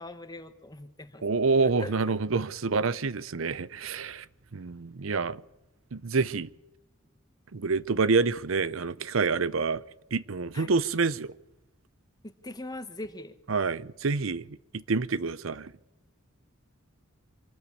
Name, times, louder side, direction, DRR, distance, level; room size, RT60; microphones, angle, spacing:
voice 1, 0.0-1.3 1.6-2.2 10.5-10.8 12.2-13.4, left 2 dB, 20° left, 1.4 m, -41 dB
voice 2, 1.2-4.2 4.5-5.4 5.9-6.5 7.5-9.8 10.1-11.3 13.5-14.4 14.7-15.7, right 4 dB, 80° right, 0.7 m, -27 dB
25.5 x 13.5 x 8.6 m
head